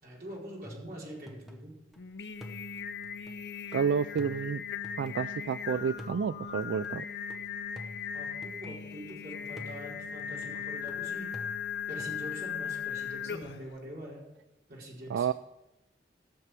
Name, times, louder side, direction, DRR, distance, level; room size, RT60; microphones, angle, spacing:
voice 1, 0.0-1.8 8.1-11.5 11.9-14.2 14.7-15.3, equal, 55° right, -4 dB, 4.6 m, -44 dB
sound 1, 0.6-2.0 2.4-5.6 6.0-9.1 9.6-12.2, equal, ahead, 0.9 m, -49 dB
Singing, 2.0-13.7, left 7 dB, 75° left, 0.7 m, -38 dB
voice 2, 3.7-4.6 5.0-7.0 15.1-15.3, right 6 dB, 90° right, 14 dB, 0.3 m, -30 dB
15.5 x 6.8 x 6.0 m, 0.95 s
head